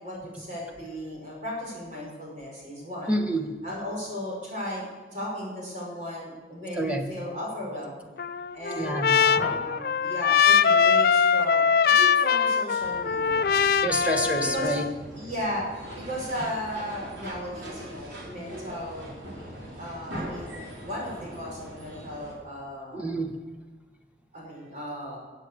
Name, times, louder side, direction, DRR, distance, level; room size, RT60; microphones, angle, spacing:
voice 1, 0.0-3.2 3.6-8.0 8.5-13.5 14.5-14.8 15.1-19.1 19.8-23.1 24.3-25.2, equal, 45° right, -3 dB, 5.3 m, -36 dB
voice 2, 3.1-3.5 6.8-7.0 8.8-9.6 13.8-14.8 22.9-23.3, right 1 dB, 5° right, 4 dB, 1.2 m, -28 dB
Trumpet, 8.2-14.9, left 6 dB, 55° left, 0.4 m, -22 dB
sound 1, 12.8-22.3, equal, 80° right, 4.5 m, -42 dB
15.0 x 8.2 x 6.8 m, 1.4 s
head